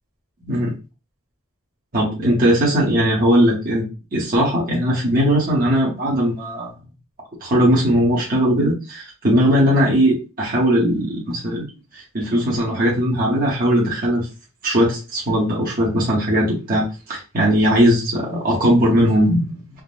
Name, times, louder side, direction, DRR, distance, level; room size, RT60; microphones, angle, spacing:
voice 1, 0.4-0.7 1.9-6.7 7.4-11.7 11.9-14.3 14.6-19.4, equal, 40° right, -5 dB, 0.8 m, -19 dB
3.5 x 2.0 x 2.4 m, 0.31 s
head